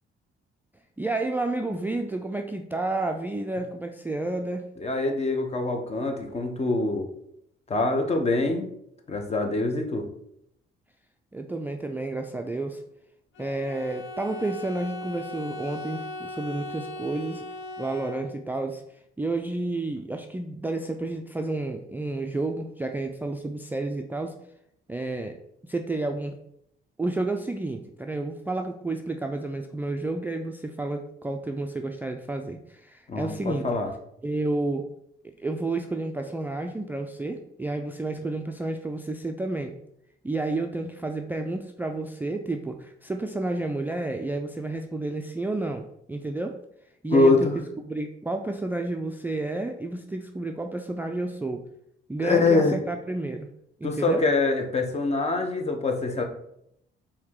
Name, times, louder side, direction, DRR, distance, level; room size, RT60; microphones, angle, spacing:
voice 1, 1.0-4.7 11.3-12.8 13.4-17.4 17.8-18.8 19.2-24.4 24.9-25.4 25.7-26.4 27.0-33.6 34.2-34.9 35.2-39.7 40.2-46.6 47.0-47.5 47.8-51.6 52.1-53.5 53.8-54.2, right 2 dB, 10° right, 5 dB, 0.3 m, -30 dB
voice 2, 4.8-7.0 7.7-8.7 9.1-10.1 33.1-33.9 47.1-47.5 52.2-52.8 53.8-56.2, left 3 dB, 30° left, 4 dB, 0.8 m, -24 dB
Bowed string instrument, 13.3-18.6, left 2 dB, 70° left, 0.8 m, -38 dB
4.7 x 2.8 x 3.6 m, 0.76 s
cardioid pair, 90°, 20 cm